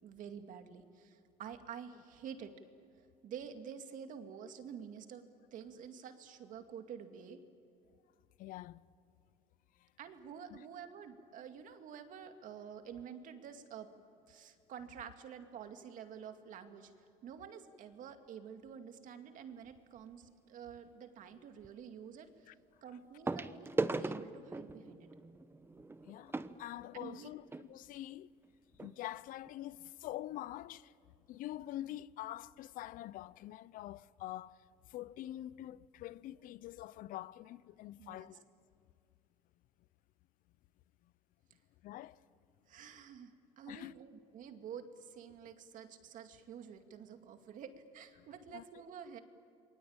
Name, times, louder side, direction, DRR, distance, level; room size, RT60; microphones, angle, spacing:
voice 1, 0.0-2.5 3.2-7.4 10.0-13.9 14.3-16.9 17.2-22.5 22.8-25.1 26.9-27.3 38.0-38.3 42.7-49.2, right 7 dB, 60° right, 2.3 m, -49 dB
voice 2, 8.4-8.8 9.8-9.9 10.5-10.6 22.5-22.6 26.0-28.3 28.8-30.9 31.3-38.4 41.8-42.2 43.7-44.0 48.2-48.3 48.5-48.6, left 14 dB, 65° left, 0.7 m, -45 dB
sound 1, 19.7-20.0 21.6-21.7 23.3-27.7 28.4-28.5 28.7-28.9 29.5-29.6, right 3 dB, 15° right, 1.1 m, -39 dB
28.0 x 23.0 x 8.9 m
supercardioid pair, 90°, 15 cm